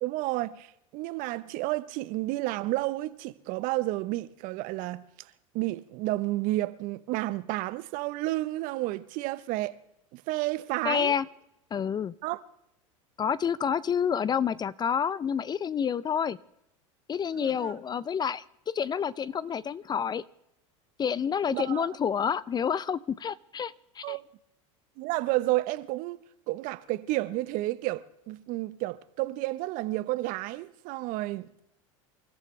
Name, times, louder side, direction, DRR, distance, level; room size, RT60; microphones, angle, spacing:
voice 1, 0.0-5.1 5.5-9.8 10.1-11.1 12.2-12.4 17.4-17.7 21.5-21.9 24.0-24.2 25.0-31.6, right 18 dB, 55° right, 1.0 m, -31 dB
voice 2, 10.8-11.3 11.7-12.1 13.2-16.4 17.1-20.2 21.0-24.2, left 7 dB, 25° left, 0.6 m, -29 dB
28.0 x 14.0 x 3.3 m
hypercardioid pair, 90°, 17 cm